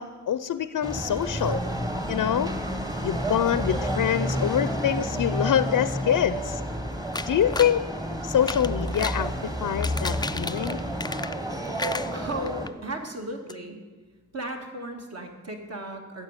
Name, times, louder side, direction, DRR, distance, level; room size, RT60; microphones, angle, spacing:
voice 1, 0.0-1.6 2.1-2.5 3.0-6.6 7.3-7.8 8.2-9.3 9.6-10.8, left 9 dB, 85° left, 14 dB, 0.6 m, -25 dB
sound 1, 0.8-12.7, equal, 10° right, 1.4 m, -30 dB
sound 2, 7.1-7.8 8.3-9.2 9.7-11.5 11.8-12.7 13.1-13.2 13.5-13.6, left 3 dB, 15° left, 0.4 m, -34 dB
voice 2, 12.1-13.9 14.3-16.2, right 1 dB, 50° right, 2 dB, 2.3 m, -35 dB
15.0 x 7.1 x 9.8 m, 1.4 s
wide cardioid pair, 105°, 32 cm